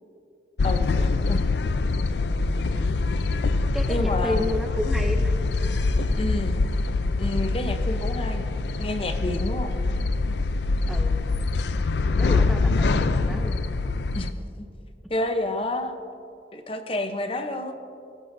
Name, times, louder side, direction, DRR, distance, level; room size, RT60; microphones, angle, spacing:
sound 1, 0.6-14.3, left 3 dB, 70° left, 0.4 m, -24 dB
voice 1, 0.6-1.5 3.9-4.5 6.2-6.6 7.2-8.4 8.8-9.7 14.1-14.7 15.1-16.0 16.5-17.7, left 1 dB, 30° left, 7 dB, 0.8 m, -29 dB
voice 2, 2.7-3.1 3.7-5.4 10.9-11.2 12.2-13.6, equal, ahead, 3 dB, 0.5 m, -32 dB
21.5 x 12.5 x 2.7 m, 2.6 s
head